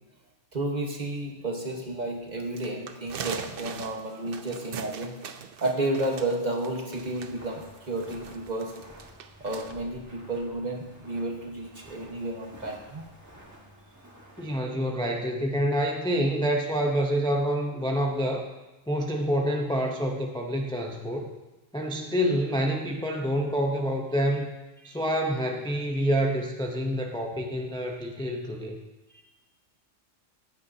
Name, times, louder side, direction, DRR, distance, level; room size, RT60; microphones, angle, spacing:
voice 1, 0.5-5.1 5.6-8.7 9.4-13.0 24.8-25.0, right 2 dB, 35° right, 1 dB, 1.4 m, -32 dB
sound 1, 2.4-9.7, right 7 dB, 55° right, 0.7 m, -40 dB
Walk footsteps, 6.9-14.6, equal, 15° right, 1.6 m, -50 dB
voice 2, 14.4-18.5 18.9-21.3 21.7-24.5 24.8-28.8, equal, 5° left, 1 dB, 0.5 m, -27 dB
14.0 x 9.7 x 2.8 m, 1.1 s
omnidirectional pair, 1.3 m